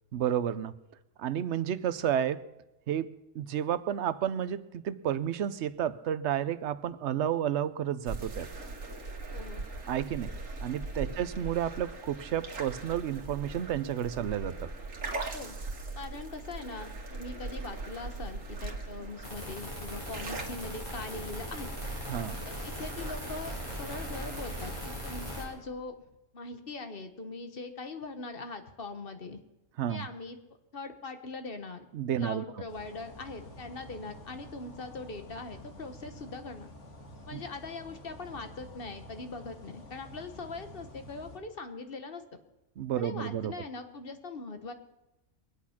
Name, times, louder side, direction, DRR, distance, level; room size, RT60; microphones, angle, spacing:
voice 1, 0.1-0.8 1.2-2.5 2.9-8.5 9.9-10.3 10.6-14.7 22.1-22.4 29.8-30.1 31.9-32.4 37.3-37.4 42.8-43.5, right 10 dB, 65° right, 15 dB, 0.9 m, -31 dB
sound 1, 8.1-24.8, right 3 dB, 85° right, 2.0 m, -41 dB
voice 2, 9.3-9.6 11.0-11.2 15.3-15.5 15.9-21.7 22.4-25.9 26.3-29.4 29.9-30.4 30.7-31.9 32.2-36.7 37.2-42.2 42.9-44.7, left 3 dB, 45° left, 8 dB, 1.3 m, -41 dB
sound 2, 19.2-25.4, equal, 25° left, 4.6 m, -39 dB
sound 3, 32.7-41.4, left 1 dB, 65° left, 2.0 m, -49 dB
23.0 x 8.5 x 5.8 m, 0.99 s
omnidirectional pair, 1.3 m